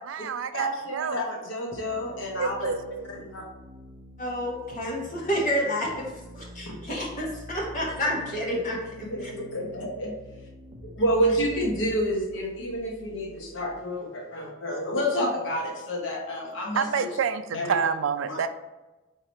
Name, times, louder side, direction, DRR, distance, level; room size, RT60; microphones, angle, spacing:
voice 1, 0.0-1.2 2.3-3.0 16.8-18.5, right 6 dB, 70° right, 10 dB, 0.4 m, -28 dB
voice 2, 0.5-2.7 3.1-3.4 6.7-6.8 9.1-10.1 10.8-17.1 17.5-17.8 18.2-18.4, equal, 70° left, 0 dB, 0.9 m, -29 dB
sound 1, 1.7-13.7, equal, 20° right, 0.5 m, -46 dB
voice 3, 4.2-9.3, equal, 40° left, -4 dB, 1.0 m, -29 dB
4.6 x 2.8 x 4.0 m, 1.1 s
head